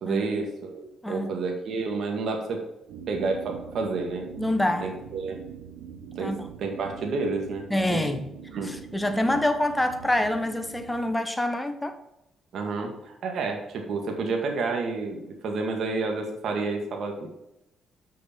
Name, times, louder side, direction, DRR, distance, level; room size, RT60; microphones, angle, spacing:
voice 1, 0.0-2.6 3.1-4.3 4.8-5.4 6.2-8.1 8.5-8.7 9.2-9.4 12.5-17.3, right 4 dB, 65° right, 1.9 m, -30 dB
voice 2, 1.0-1.4 4.4-4.9 6.2-6.4 7.7-8.3 8.6-11.9, left 1 dB, 10° left, 1.2 m, -26 dB
sound 1, 2.9-11.2, right 8 dB, 85° right, 0.8 m, -43 dB
6.5 x 6.3 x 7.4 m
cardioid pair, 90°, 0 cm